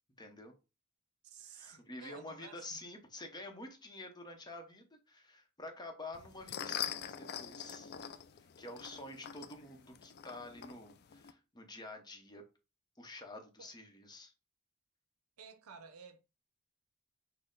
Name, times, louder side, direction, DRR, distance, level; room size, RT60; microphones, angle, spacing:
voice 1, 0.2-0.5 1.4-7.9 8.6-12.4 13.0-14.3, left 2 dB, 20° left, 0.8 m, -49 dB
voice 2, 1.2-2.8 13.6-13.7 15.4-16.2, right 6 dB, 80° right, 0.7 m, -53 dB
sound 1, 6.1-11.3, left 9 dB, 45° left, 0.4 m, -44 dB
6.3 x 2.2 x 3.8 m
head